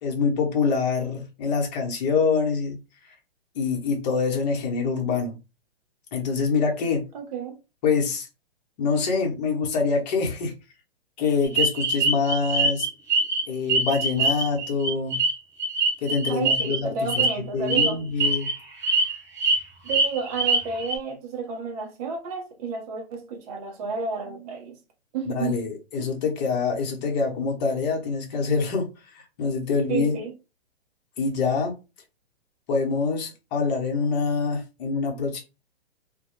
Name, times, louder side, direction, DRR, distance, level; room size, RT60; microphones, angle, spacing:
voice 1, 0.0-2.8 3.5-5.4 6.1-7.0 7.8-8.3 8.8-10.5 11.2-12.9 13.5-15.2 16.0-17.2 17.5-18.5 25.2-28.9 29.1-30.2 31.2-31.8 32.7-35.4, left 5 dB, 40° left, 0.9 m, -25 dB
voice 2, 7.1-7.6 16.3-18.0 19.8-24.8 25.1-25.6 26.0-26.1 29.9-30.3, right 5 dB, 35° right, 0.6 m, -31 dB
sound 1, 11.6-13.4 13.7-16.8 17.1-17.3 17.7-17.9 18.2-18.5 18.8-19.6 19.9-20.9, right 3 dB, 10° right, 0.3 m, -23 dB
2.2 x 2.1 x 3.0 m
figure-of-eight pair, 120°, 31 cm